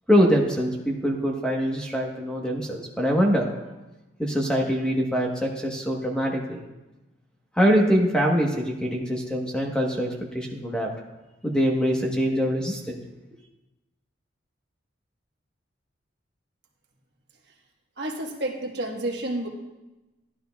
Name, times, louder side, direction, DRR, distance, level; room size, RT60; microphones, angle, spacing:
voice 1, 0.1-3.7 4.2-6.6 7.6-10.1 10.3-10.9 11.4-12.8, equal, 5° left, 0 dB, 1.0 m, -23 dB
voice 2, 18.0-19.5, right 1 dB, 55° right, 1 dB, 1.3 m, -30 dB
14.0 x 11.0 x 2.3 m, 1.0 s
head